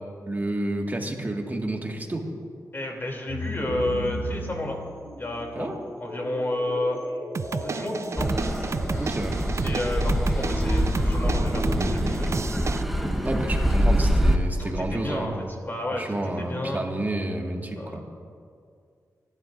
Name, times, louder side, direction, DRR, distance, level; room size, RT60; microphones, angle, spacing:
voice 1, 0.3-2.3 5.5-5.8 9.0-9.4 13.3-15.4 15.9-18.0, right 1 dB, 25° right, 1 dB, 1.8 m, -30 dB
voice 2, 2.7-4.8 5.2-5.7 6.0-7.0 7.5-8.3 9.6-12.3 14.6-16.8 17.8-18.0, left 1 dB, 35° left, 0 dB, 3.0 m, -31 dB
sound 1, 3.3-11.8, left 1 dB, 60° left, 4.3 m, -37 dB
sound 2, 7.3-12.8, right 5 dB, 45° right, 0.4 m, -32 dB
Car passing by / Accelerating revving vroom, 8.2-14.4, equal, ahead, 1.2 m, -24 dB
26.5 x 11.5 x 2.6 m, 2.2 s
cardioid pair, 70°, 7 cm